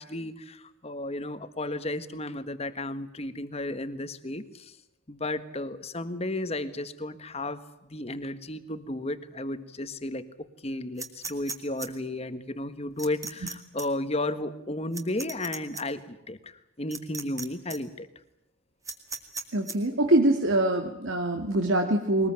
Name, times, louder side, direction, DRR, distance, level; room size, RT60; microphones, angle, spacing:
voice 1, 0.0-4.8 5.1-10.2 10.6-18.1, left 1 dB, 30° left, 11 dB, 1.5 m, -33 dB
sound 1, 11.0-11.9 13.0-13.5 13.8-13.9 14.9-15.8 16.9-17.4 17.7-17.8 18.8-19.7, right 4 dB, 15° right, 2.1 m, -36 dB
voice 2, 19.5-22.3, right 1 dB, 75° right, 3 dB, 2.1 m, -24 dB
22.0 x 20.5 x 8.9 m, 0.89 s
head